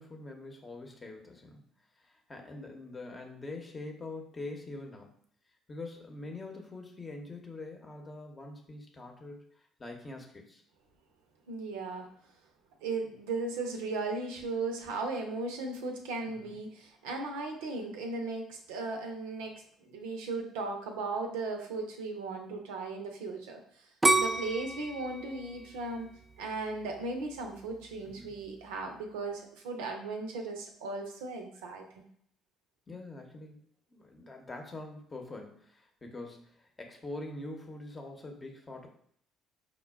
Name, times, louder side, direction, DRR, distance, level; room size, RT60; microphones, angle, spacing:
voice 1, 0.0-1.6 2.0-5.1 5.7-10.6 16.3-16.6 28.2-28.3 32.9-33.6 33.9-38.9, left 2 dB, 30° left, 2 dB, 0.8 m, -44 dB
voice 2, 11.5-12.1 12.8-19.5 19.8-23.9 24.1-26.1 26.4-31.9, right 3 dB, 80° right, 3 dB, 0.5 m, -36 dB
sound 1, 24.0-26.9 27.4-27.9, right 2 dB, 20° right, 0.3 m, -29 dB
5.0 x 2.1 x 2.3 m, 0.63 s
hypercardioid pair, 55°, 0 cm